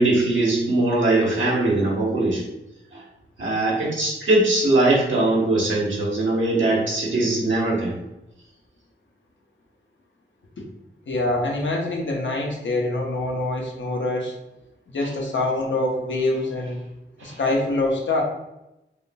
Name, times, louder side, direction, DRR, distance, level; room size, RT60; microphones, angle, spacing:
voice 1, 0.0-2.4 2.9-3.0 3.4-8.0 17.2-17.4, right 2 dB, 80° right, -4 dB, 1.0 m, -21 dB
voice 2, 11.1-14.3 14.9-16.8 17.2-18.2, left 2 dB, 75° left, 0 dB, 0.7 m, -25 dB
3.5 x 2.6 x 2.2 m, 0.91 s
wide cardioid pair, 90°, 20 cm